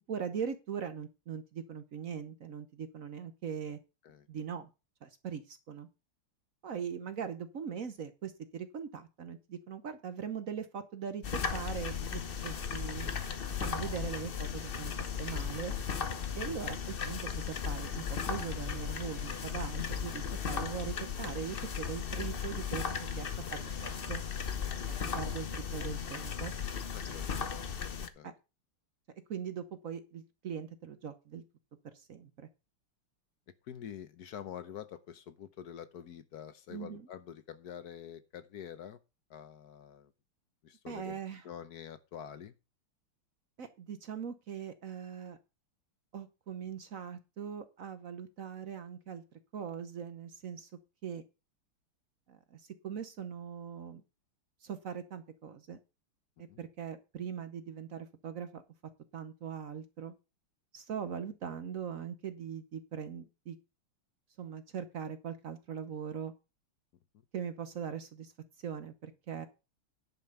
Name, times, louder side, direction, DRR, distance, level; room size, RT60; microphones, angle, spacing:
voice 1, 0.1-3.8 4.3-4.7 5.0-5.9 6.6-13.1 13.6-14.9 15.2-15.7 16.4-22.8 23.2-24.2 25.0-26.5 28.2-28.3 29.3-31.4 31.9-32.3 36.7-37.1 40.9-41.4 43.6-45.4 46.1-49.2 49.5-50.7 51.0-51.2 52.3-54.0 54.6-55.8 56.4-58.6 59.1-60.1 60.7-63.6 64.4-66.3 67.3-68.3 68.6-69.5, right 7 dB, 55° right, 0.9 m, -41 dB
sound 1, 11.2-28.1, left 6 dB, 80° left, 0.5 m, -36 dB
voice 2, 26.9-27.3 28.1-28.3 33.7-39.0 39.3-40.1 40.6-41.2 41.4-42.5 56.5-56.6, left 9 dB, 60° left, 1.1 m, -46 dB
10.5 x 5.4 x 6.6 m
omnidirectional pair, 2.4 m